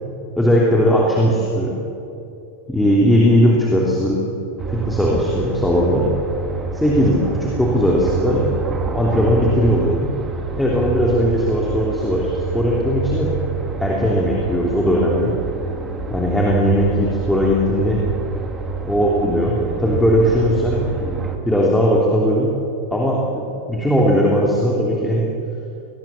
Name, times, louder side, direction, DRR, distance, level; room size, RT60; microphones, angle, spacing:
voice 1, 0.4-1.8 2.7-4.3 4.7-6.1 6.7-10.1 10.6-13.4 13.8-15.4 16.1-18.1 18.8-22.6 22.9-25.3, equal, 5° left, -3 dB, 3.2 m, -18 dB
sound 1, 4.6-21.4, right 5 dB, 20° right, 2.4 m, -28 dB
22.5 x 19.0 x 7.4 m, 2.9 s
figure-of-eight pair, 90°, 0 cm